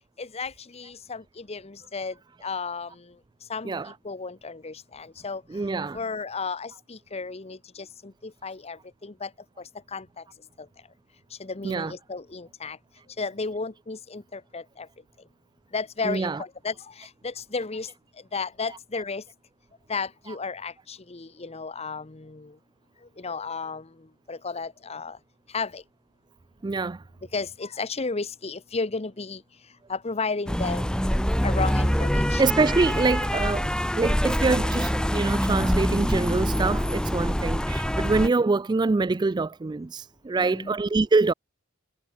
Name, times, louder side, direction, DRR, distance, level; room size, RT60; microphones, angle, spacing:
voice 1, 0.2-2.1 2.4-2.9 3.5-3.7 4.0-5.4 5.9-9.3 9.9-10.2 11.4-12.8 13.2-14.9 15.7-17.9 18.3-19.2 19.9-22.5 23.2-23.9 24.3-25.2 25.5-25.8 27.3-29.4 29.9-31.0 31.4-32.4 40.4-40.8, left 4 dB, 30° left, 0.9 m, -33 dB
voice 2, 3.6-4.0 5.5-6.0 11.6-11.9 16.0-16.4 18.7-18.8 20.3-20.4 26.6-27.0 32.4-33.7 34.0-41.3, right 3 dB, 20° right, 0.3 m, -25 dB
sound 1, 30.5-38.3, equal, 5° left, 1.7 m, -25 dB
head